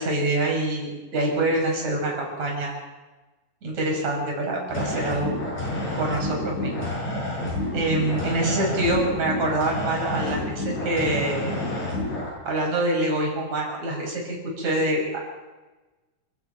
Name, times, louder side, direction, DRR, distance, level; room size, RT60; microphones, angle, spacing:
voice 1, 0.0-2.7 3.6-5.3 6.0-6.9 7.7-11.5 12.4-15.3, right 2 dB, 60° right, 0 dB, 6.6 m, -25 dB
sound 1, 4.7-12.3, left 1 dB, 60° left, 8.2 m, -29 dB
28.0 x 10.5 x 8.9 m, 1.2 s
omnidirectional pair, 3.5 m